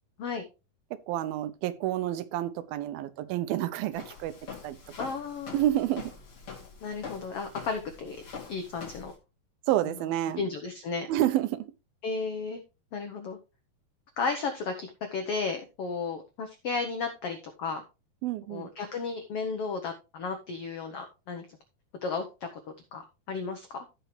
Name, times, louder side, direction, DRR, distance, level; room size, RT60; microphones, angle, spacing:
voice 1, 0.9-4.4 4.6-4.8 5.5-6.1 9.7-10.4 11.1-11.7 18.2-18.7, right 13 dB, 85° right, 2.6 m, -29 dB
Walk footsteps, 3.9-9.1, left 5 dB, 40° left, 3.5 m, -44 dB
voice 2, 5.0-5.6 6.8-8.2 8.5-9.1 10.4-11.1 12.0-12.6 12.9-13.4 14.2-17.8 18.5-21.5 22.0-22.5 22.9-23.8, left 4 dB, 80° left, 1.3 m, -34 dB
15.0 x 5.5 x 3.2 m
omnidirectional pair, 4.2 m